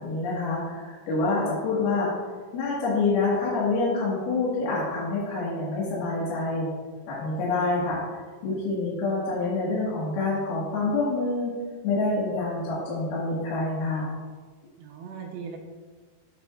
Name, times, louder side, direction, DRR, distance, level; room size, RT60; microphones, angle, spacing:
voice 1, 0.0-2.1 2.5-6.7 7.1-8.0 8.4-11.5 11.8-14.1, left 3 dB, 60° left, -7 dB, 3.1 m, -27 dB
voice 2, 7.6-7.9 14.8-15.6, right 7 dB, 80° right, 1 dB, 2.6 m, -39 dB
13.0 x 7.8 x 2.4 m, 1.5 s
omnidirectional pair, 5.8 m